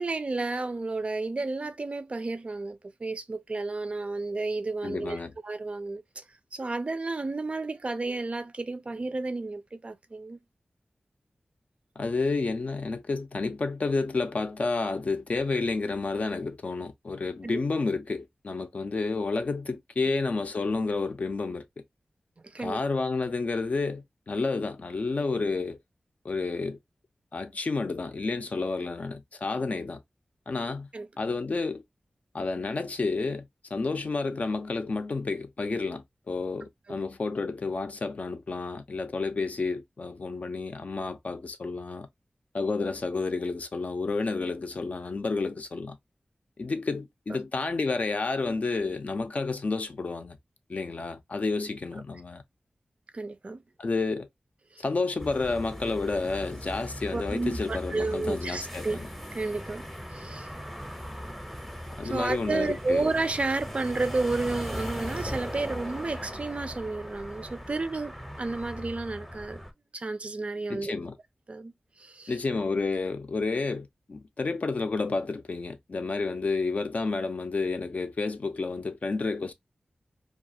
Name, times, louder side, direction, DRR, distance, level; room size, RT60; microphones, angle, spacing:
voice 1, 0.0-6.2 6.5-10.4 17.4-17.6 22.4-22.8 30.9-31.1 36.9-37.0 47.3-47.4 53.1-53.6 54.7-54.8 57.1-59.0 59.3-60.5 62.0-69.6 69.9-70.9 71.5-71.7 72.0-72.4, right 3 dB, 45° right, 0.4 m, -32 dB
voice 2, 4.8-5.3 12.0-21.6 22.6-25.8 26.2-26.8 27.3-30.0 30.5-30.9 31.2-31.8 32.3-33.4 33.7-42.1 42.5-46.0 46.6-50.4 50.7-52.4 53.8-54.3 54.8-59.1 62.0-63.1 70.7-71.2 72.3-79.5, left 3 dB, 55° left, 0.5 m, -30 dB
sound 1, 55.2-69.7, equal, ahead, 0.6 m, -39 dB
2.4 x 2.3 x 2.7 m
wide cardioid pair, 65°, 3 cm